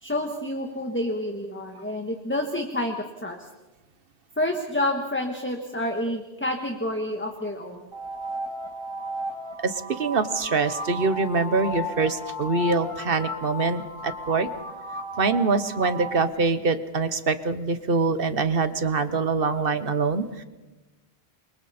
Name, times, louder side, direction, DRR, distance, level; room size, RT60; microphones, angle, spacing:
voice 1, 0.0-3.5 4.4-7.8, left 1 dB, 10° left, 3 dB, 1.5 m, -29 dB
sound 1, 7.9-16.3, left 1 dB, 25° right, 1.8 m, -34 dB
voice 2, 9.6-14.5 15.2-20.4, right 4 dB, 65° right, 11 dB, 1.3 m, -24 dB
29.0 x 23.5 x 4.3 m, 1.1 s
omnidirectional pair, 1.0 m